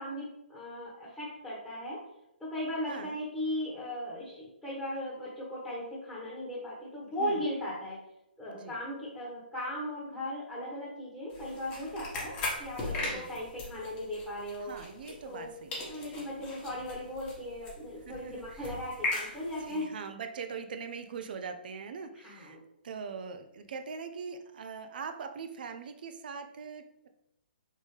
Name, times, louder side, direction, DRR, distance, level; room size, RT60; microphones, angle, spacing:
voice 1, 0.0-2.0 2.4-8.0 8.4-12.3 12.6-14.7 15.2-15.5 15.9-19.9 22.2-22.6, left 1 dB, 5° left, -8 dB, 1.3 m, -37 dB
voice 2, 2.9-3.2 7.0-7.5 8.5-8.8 13.0-13.4 14.6-16.2 18.0-18.8 19.3-22.6 22.8-27.1, right 5 dB, 60° right, 7 dB, 0.6 m, -42 dB
sound 1, 11.3-15.5 15.7-19.8, left 2 dB, 20° left, 1.3 m, -39 dB
4.0 x 3.7 x 3.2 m, 0.83 s
hypercardioid pair, 145°, 6 cm